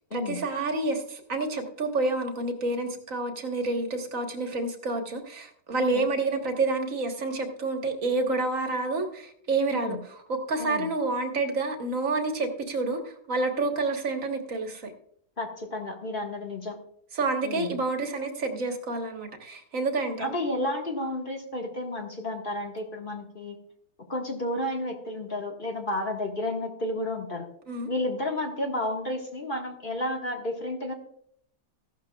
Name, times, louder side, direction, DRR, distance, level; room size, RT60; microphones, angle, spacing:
voice 1, 0.1-10.0 10.3-14.9 17.1-20.3 27.7-27.9, right 3 dB, 50° right, 4 dB, 1.7 m, -29 dB
voice 2, 15.4-16.8 17.4-17.7 20.2-23.6 24.1-27.5 27.9-30.9, left 1 dB, 30° left, 1 dB, 1.6 m, -31 dB
15.0 x 12.0 x 2.3 m, 0.67 s
omnidirectional pair, 1.8 m